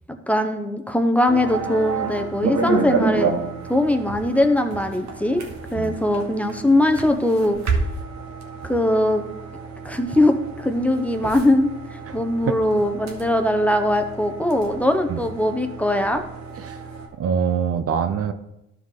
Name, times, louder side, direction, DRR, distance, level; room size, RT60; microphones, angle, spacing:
voice 1, 0.3-3.3 3.7-5.4 5.7-7.6 8.7-9.2 9.8-11.7 12.1-16.2, left 1 dB, 5° left, 5 dB, 0.8 m, -20 dB
sound 1, 1.3-17.1, right 4 dB, 65° right, 1.6 m, -30 dB
voice 2, 17.1-18.3, right 7 dB, 50° right, 9 dB, 0.7 m, -24 dB
13.0 x 4.6 x 3.8 m, 0.87 s
cardioid pair, 90°, 30 cm